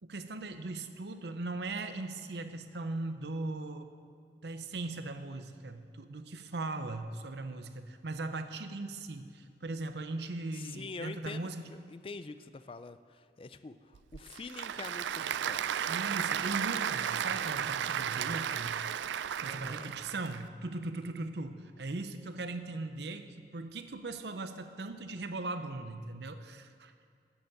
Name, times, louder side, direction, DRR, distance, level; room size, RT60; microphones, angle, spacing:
voice 1, 0.0-3.9 4.4-11.7 15.9-19.0 19.4-27.1, right 2 dB, 75° right, 8 dB, 0.7 m, -39 dB
voice 2, 10.5-15.9 19.4-19.9, left 3 dB, 30° left, 12 dB, 0.4 m, -45 dB
Applause / Crowd, 13.9-20.4, right 9 dB, 90° right, 0.3 m, -34 dB
11.5 x 7.0 x 7.8 m, 2.2 s
head